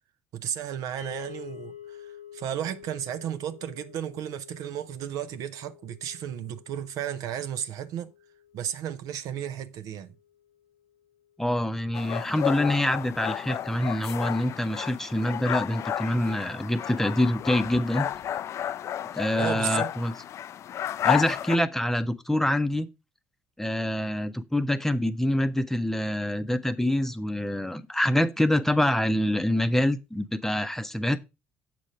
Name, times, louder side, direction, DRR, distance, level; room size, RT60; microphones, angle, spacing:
voice 1, 0.3-8.1 8.5-10.1 19.3-19.9, right 10 dB, 60° right, 0.6 m, -34 dB
sound 1, 1.0-11.3, left 9 dB, 85° left, 0.8 m, -49 dB
voice 2, 11.4-18.1 19.1-20.1 21.0-22.9 23.6-31.2, left 1 dB, 5° left, 0.7 m, -26 dB
sound 2, 11.9-21.6, left 10 dB, 45° left, 0.3 m, -32 dB
7.6 x 5.2 x 4.8 m
figure-of-eight pair, 50°, 7 cm